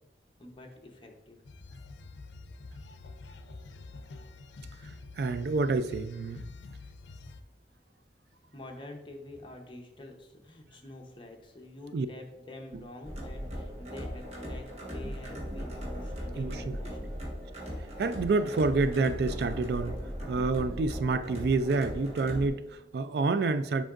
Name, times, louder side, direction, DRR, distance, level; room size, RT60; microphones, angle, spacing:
voice 1, 0.4-1.4 8.5-17.0, left 2 dB, 30° left, 0.8 m, -47 dB
sound 1, 1.4-7.4, left 3 dB, 85° left, 0.5 m, -47 dB
voice 2, 4.8-6.4 11.9-12.1 16.4-16.8 18.0-20.0 20.3-23.8, right 3 dB, 60° right, 0.3 m, -28 dB
sound 2, 13.0-22.5, equal, 35° right, 1.3 m, -38 dB
7.6 x 5.4 x 2.5 m
head